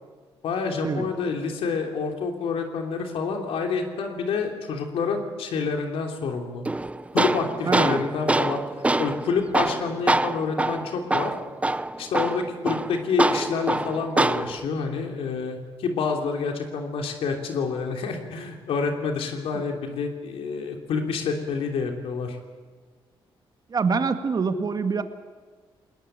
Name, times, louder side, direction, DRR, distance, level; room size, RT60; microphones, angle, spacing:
voice 1, 0.4-6.6 7.1-8.6 9.0-11.3 12.0-22.4, left 5 dB, 80° left, 3 dB, 3.1 m, -28 dB
Tools, 6.7-14.7, right 2 dB, 15° right, 0.6 m, -25 dB
voice 2, 7.7-8.0 19.5-19.6 23.7-25.0, right 5 dB, 45° right, 8 dB, 1.9 m, -25 dB
20.5 x 20.0 x 9.0 m, 1.4 s
cardioid pair, 80°, 10 cm